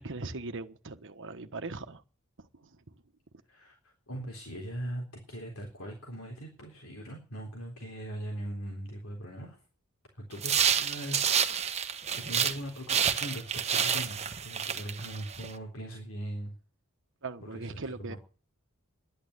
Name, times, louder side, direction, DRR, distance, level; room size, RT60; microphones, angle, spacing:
voice 1, 0.0-2.0 2.4-2.8 17.2-18.2, right 3 dB, 60° right, 1.3 m, -40 dB
voice 2, 3.5-9.6 10.1-11.7 12.1-16.5 17.4-18.2, right 1 dB, 65° left, 3.7 m, -40 dB
sound 1, 10.4-12.6 12.9-15.5, right 8 dB, 30° right, 1.1 m, -29 dB
11.5 x 11.0 x 8.2 m
head